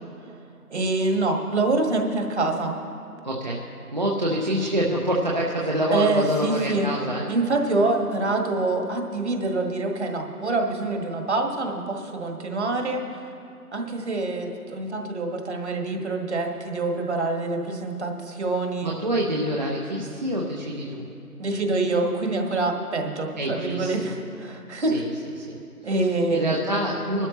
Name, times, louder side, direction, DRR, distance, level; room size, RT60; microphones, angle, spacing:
voice 1, 0.7-2.7 5.9-6.9 7.3-13.2 13.7-18.9 21.4-25.0 25.8-26.6, right 2 dB, 45° right, 2 dB, 1.7 m, -25 dB
voice 2, 3.2-3.6 3.9-7.3 18.8-21.0 23.4-24.1 24.9-25.1 25.4-25.6 25.8-25.9 26.3-27.3, equal, 30° right, -3 dB, 0.8 m, -26 dB
22.0 x 12.5 x 3.0 m, 2.5 s
figure-of-eight pair, 155°, 47 cm